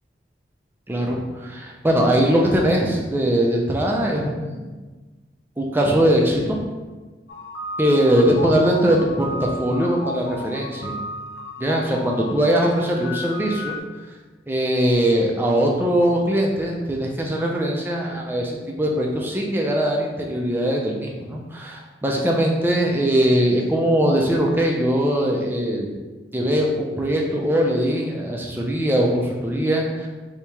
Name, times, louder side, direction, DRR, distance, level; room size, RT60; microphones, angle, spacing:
voice 1, 0.9-4.7 5.6-6.6 7.8-11.0 11.6-13.7 14.5-25.9 26.3-30.1, equal, 10° right, -1 dB, 0.4 m, -21 dB
sound 1, 7.3-13.8, left 1 dB, 65° left, 0.5 m, -34 dB
2.9 x 2.8 x 3.3 m, 1.3 s
head